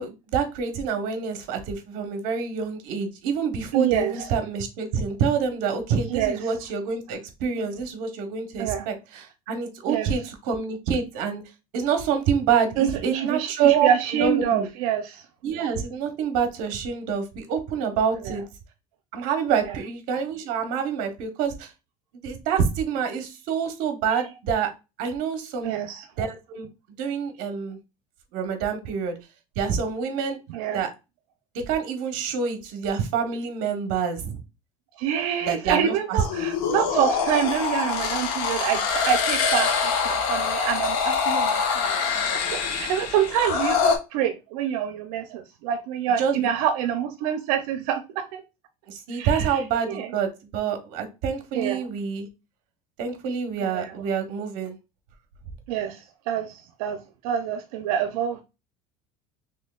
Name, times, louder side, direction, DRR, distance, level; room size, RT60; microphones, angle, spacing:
voice 1, 0.0-11.4 11.7-14.7 15.4-18.4 19.1-21.7 22.2-24.7 25.0-25.7 26.2-26.7 27.0-27.8 28.3-29.2 29.6-30.4 30.7-30.9 31.5-34.4 35.4-36.2 46.2-46.5 48.9-52.3 53.0-54.8, right 6 dB, 50° right, 0.9 m, -27 dB
voice 2, 3.7-4.3 6.1-6.4 8.6-8.9 9.9-10.1 12.8-15.2 18.2-18.4 19.7-19.8 25.6-26.3 30.5-30.8 35.0-42.0 42.5-48.4 49.1-50.1 51.5-51.9 53.6-53.9 55.7-58.4, right 9 dB, 80° right, 0.5 m, -26 dB
sound 1, 36.2-44.0, left 6 dB, 90° left, 1.0 m, -25 dB
4.3 x 3.1 x 2.3 m
cardioid pair, 180°, 18 cm